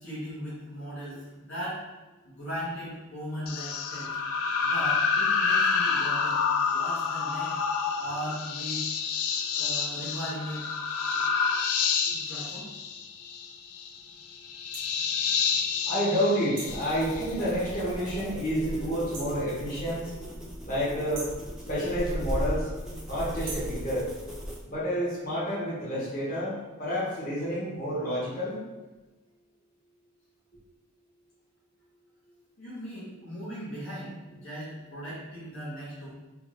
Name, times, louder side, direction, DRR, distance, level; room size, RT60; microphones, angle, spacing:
voice 1, 0.0-1.8 2.2-4.2 4.6-7.5 8.0-8.9 9.5-10.7 12.1-12.7 32.6-36.1, equal, 65° left, -9 dB, 1.1 m, -38 dB
sound 1, 3.5-17.3, left 5 dB, 85° left, 0.3 m, -28 dB
sound 2, 14.7-14.9 16.6-16.8 19.1-19.4 21.1-21.4 23.4-23.8, right 3 dB, 60° right, 0.6 m, -40 dB
voice 2, 15.9-20.1 20.6-21.3 21.7-22.7 23.0-24.1 24.7-28.6, equal, 40° left, -9 dB, 1.3 m, -29 dB
sound 3, 16.6-24.6, equal, 5° right, 0.4 m, -37 dB
3.4 x 2.4 x 3.1 m, 1.2 s
head